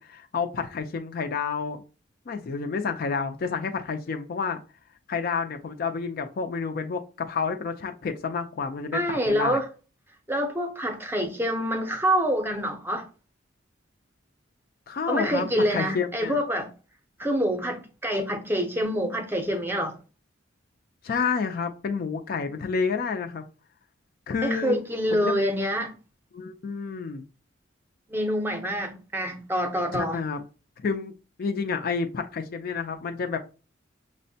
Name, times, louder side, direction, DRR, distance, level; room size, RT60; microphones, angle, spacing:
voice 1, 0.0-1.8 2.3-4.6 5.1-9.6 14.9-16.4 21.0-23.4 24.3-24.8 25.1-25.4 26.3-27.2 29.9-30.4 30.8-31.1 31.4-33.4, left 5 dB, 50° left, 0.4 m, -29 dB
voice 2, 8.9-9.7 10.3-13.1 15.1-16.7 17.2-20.0 24.4-26.0 28.1-30.2, equal, 10° right, 0.6 m, -26 dB
6.0 x 2.1 x 2.7 m
head